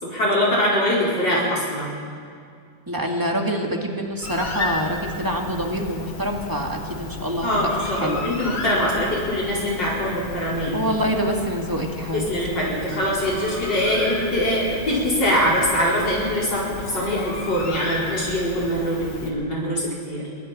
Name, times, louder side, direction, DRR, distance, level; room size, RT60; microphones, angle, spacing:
voice 1, 0.0-1.9 7.4-10.8 12.1-20.3, equal, 60° left, -7 dB, 5.5 m, -23 dB
voice 2, 2.9-8.2 10.7-12.2, equal, 10° right, 1 dB, 2.0 m, -26 dB
Bird, 4.2-19.3, left 3 dB, 75° left, 2.9 m, -34 dB
28.0 x 23.0 x 4.3 m, 2.2 s
omnidirectional pair, 2.2 m